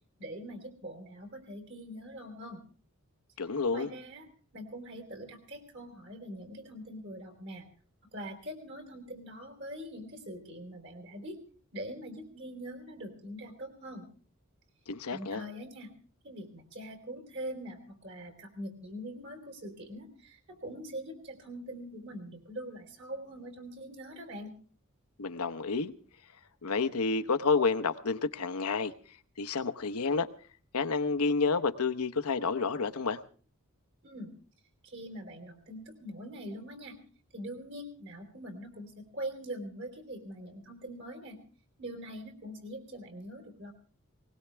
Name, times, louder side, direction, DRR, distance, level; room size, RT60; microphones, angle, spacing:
voice 1, 0.2-2.6 3.7-4.3 4.5-7.7 8.1-11.4 11.7-14.1 15.1-15.9 16.2-24.5 34.0-34.3 34.8-37.0 37.3-41.4 41.8-43.7, equal, 55° right, 4.0 m, -43 dB
voice 2, 3.4-3.9 14.9-15.4 25.2-25.9 26.6-28.9 29.4-30.3 30.7-33.2, left 4 dB, 80° left, 0.9 m, -29 dB
20.0 x 19.5 x 3.4 m
head